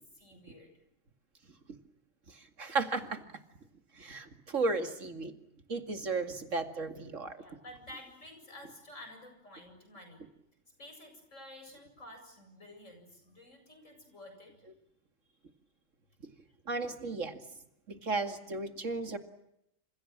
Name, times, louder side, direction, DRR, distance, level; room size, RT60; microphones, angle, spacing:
voice 1, 0.1-0.7 7.4-10.2 10.8-14.5, left 1 dB, 80° left, 6 dB, 8.1 m, -51 dB
voice 2, 2.3-3.2 3.9-5.3 5.7-7.4 16.7-17.4 17.9-19.2, right 3 dB, 75° right, 7 dB, 2.7 m, -34 dB
28.5 x 27.5 x 7.4 m, 0.80 s
omnidirectional pair, 1.3 m